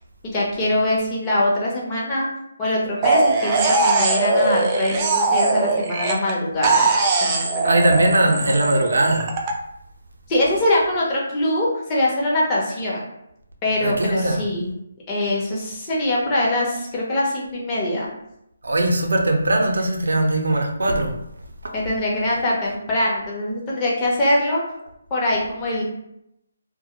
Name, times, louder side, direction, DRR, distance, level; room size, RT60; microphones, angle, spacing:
voice 1, 0.2-2.3 2.6-6.9 7.2-7.8 8.2-8.4 10.3-13.0 13.6-14.7 15.1-18.1 21.7-24.6 25.1-25.8, left 1 dB, 20° left, -5 dB, 0.7 m, -23 dB
sound 1, 3.0-6.3 6.6-9.5, right 3 dB, 25° right, 0.3 m, -20 dB
voice 2, 7.6-9.3 13.8-14.4 18.6-21.1 21.6-21.7, right 1 dB, 75° right, 2 dB, 0.5 m, -20 dB
2.1 x 2.0 x 2.9 m, 0.80 s
figure-of-eight pair, 155°, 0 cm